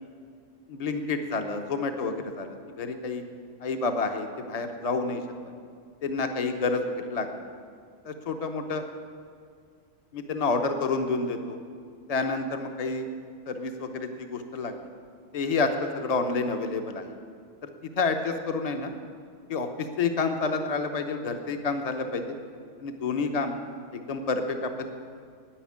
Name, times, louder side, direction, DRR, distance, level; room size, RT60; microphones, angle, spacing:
voice 1, 0.7-3.2 3.6-5.5 6.0-7.3 8.0-8.8 10.1-11.6 12.1-13.1 13.5-14.9 15.3-17.2 17.6-18.9 19.5-22.3 22.8-23.5 23.9-24.9, left 4 dB, 35° left, 6 dB, 0.9 m, -29 dB
10.0 x 9.8 x 8.6 m, 2.2 s
omnidirectional pair, 1.2 m